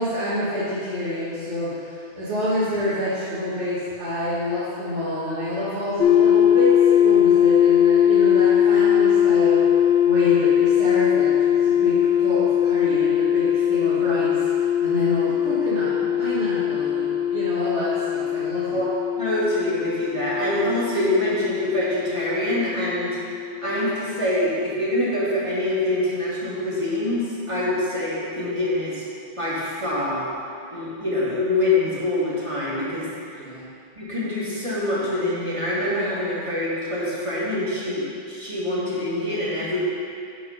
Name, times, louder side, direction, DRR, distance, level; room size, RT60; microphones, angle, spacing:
voice 1, 0.0-9.6 10.0-18.8 33.4-33.7, left 1 dB, 80° right, -13 dB, 2.2 m, -28 dB
sound 1, 6.0-23.9, left 9 dB, 75° left, 0.9 m, -20 dB
voice 2, 19.2-23.2 23.6-29.0 29.4-30.3 30.7-33.1 33.3-33.4 34.0-39.8, left 1 dB, 30° right, -8 dB, 1.9 m, -25 dB
9.5 x 4.1 x 5.6 m, 2.5 s
omnidirectional pair, 1.1 m